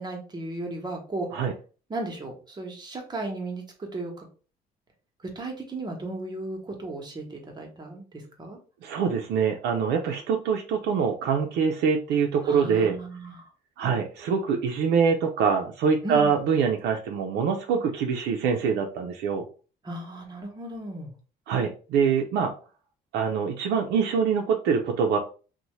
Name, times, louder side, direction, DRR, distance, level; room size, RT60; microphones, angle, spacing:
voice 1, 0.0-1.3 1.9-4.3 5.3-8.6 12.4-13.5 16.0-16.4 19.8-21.1, right 2 dB, 25° right, 2 dB, 0.8 m, -35 dB
voice 2, 8.8-13.0 13.8-19.4 21.5-22.5 23.1-25.2, right 6 dB, 80° right, 3 dB, 0.4 m, -24 dB
2.7 x 2.1 x 3.0 m, 0.37 s
cardioid pair, 110°, 17 cm